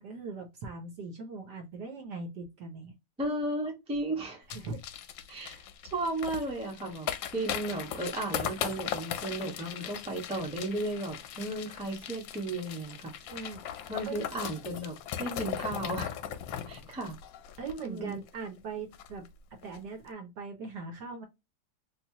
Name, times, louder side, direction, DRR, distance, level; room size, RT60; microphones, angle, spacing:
voice 1, 0.0-2.9 4.5-4.8 5.3-5.6 13.3-13.6 14.0-14.2 15.3-15.6 17.6-19.3 19.6-21.2, right 4 dB, 60° right, 1.2 m, -40 dB
voice 2, 3.2-4.4 5.3-5.6 5.9-13.1 13.9-16.1 16.7-17.2 17.8-18.2, right 1 dB, 5° right, 0.7 m, -34 dB
sound 1, 4.5-18.3 18.6-18.7 18.9-19.3 19.6-19.8, left 10 dB, 75° left, 1.2 m, -38 dB
3.3 x 3.1 x 2.8 m
omnidirectional pair, 2.4 m